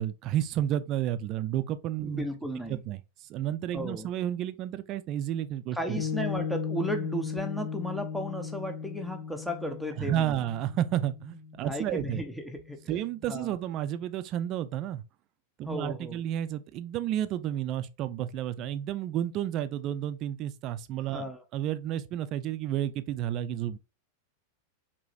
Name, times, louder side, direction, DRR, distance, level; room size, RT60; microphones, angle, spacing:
voice 1, 0.0-2.3 2.7-3.0 3.3-6.0 10.0-12.2 12.9-15.0 15.6-23.8, right 11 dB, 45° right, 0.5 m, -31 dB
voice 2, 2.0-2.8 3.7-4.1 5.7-10.4 11.6-12.8 13.3-13.6 15.6-16.2 21.1-21.4, equal, ahead, 0.8 m, -35 dB
Piano, 6.0-12.6, left 6 dB, 45° left, 0.6 m, -36 dB
4.7 x 3.0 x 2.6 m
hypercardioid pair, 105°, 0 cm